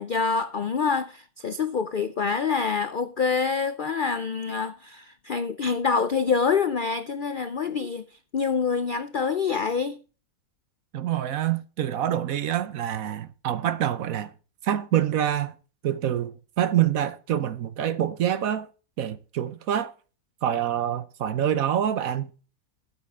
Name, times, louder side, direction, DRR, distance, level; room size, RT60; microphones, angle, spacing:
voice 1, 0.0-8.1 8.3-10.0, left 5 dB, 60° left, 0.5 m, -26 dB
voice 2, 10.9-14.3 14.6-15.5 15.8-18.7 19.0-19.9 20.4-22.3, right 10 dB, 65° right, 1.2 m, -26 dB
12.5 x 8.6 x 3.6 m
omnidirectional pair, 1.6 m